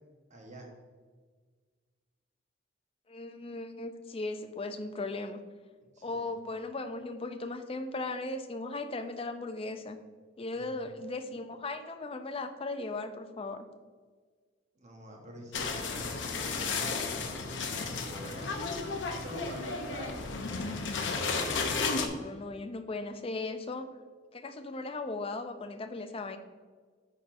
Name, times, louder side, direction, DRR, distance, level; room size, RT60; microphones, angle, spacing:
voice 1, 0.3-0.7 5.9-6.4 10.5-10.9 14.7-18.8 19.2-20.2, equal, 40° right, 0 dB, 1.1 m, -46 dB
voice 2, 3.1-5.4 6.0-10.0 10.4-13.7 21.9-23.9 24.3-26.4, left 2 dB, 30° left, 8 dB, 0.5 m, -37 dB
sound 1, 15.5-22.1, left 4 dB, 70° left, 0.7 m, -33 dB
10.0 x 4.1 x 2.6 m, 1.5 s
head